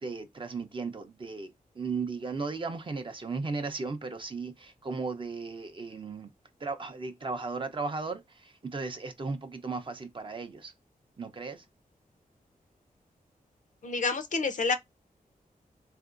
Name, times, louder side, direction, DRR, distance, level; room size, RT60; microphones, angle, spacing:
voice 1, 0.0-6.3 6.6-10.7 11.2-11.6, right 4 dB, 35° right, 0.6 m, -36 dB
voice 2, 13.8-14.7, left 4 dB, 55° left, 0.5 m, -28 dB
3.6 x 2.5 x 2.4 m
wide cardioid pair, 145°, 15 cm